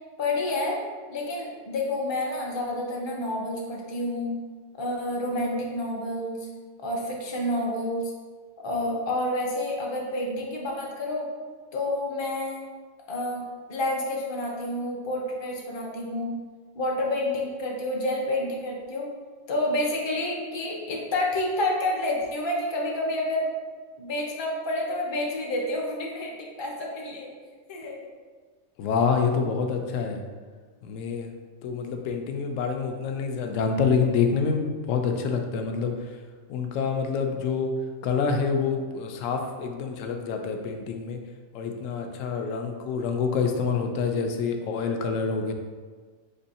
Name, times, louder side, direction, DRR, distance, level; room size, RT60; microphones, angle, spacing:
voice 1, 0.2-0.8 1.1-4.4 4.8-6.5 6.8-8.1 8.6-11.3 11.7-12.6 13.1-16.4 16.7-19.1 19.5-23.5 24.0-27.3 27.7-28.1, left 1 dB, 30° left, -2 dB, 0.5 m, -29 dB
voice 2, 28.8-30.2 30.8-31.3 31.6-35.9 36.5-37.7 38.0-41.2 41.5-45.5, left 5 dB, 75° left, 4 dB, 0.9 m, -27 dB
4.3 x 2.6 x 4.1 m, 1.5 s
omnidirectional pair, 1.4 m